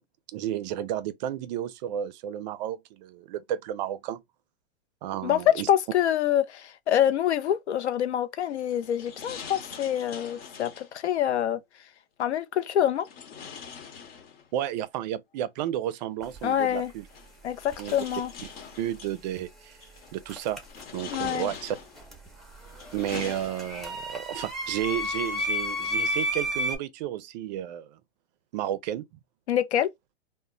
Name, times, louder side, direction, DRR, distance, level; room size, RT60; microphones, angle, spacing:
voice 1, 0.3-4.2 5.0-5.7 14.5-17.1 17.8-18.0 18.8-19.8 20.1-20.6 20.9-21.8 22.9-28.0 28.5-29.0, right 11 dB, 40° right, 0.4 m, -32 dB
voice 2, 5.2-11.6 12.2-13.1 16.4-16.9 17.4-18.3 21.1-21.5 29.5-29.9, left 10 dB, 85° left, 0.6 m, -26 dB
sound 1, 8.4-11.0 13.0-14.7 16.0-16.1 17.1-19.2 19.8-20.2 20.6-22.1 22.6-24.0, left 6 dB, 60° left, 1.0 m, -43 dB
sound 2, 16.2-16.4 17.6-18.2 20.3-21.3 21.5-26.8, equal, ahead, 0.6 m, -32 dB
2.1 x 2.0 x 3.6 m
hypercardioid pair, 125°, 33 cm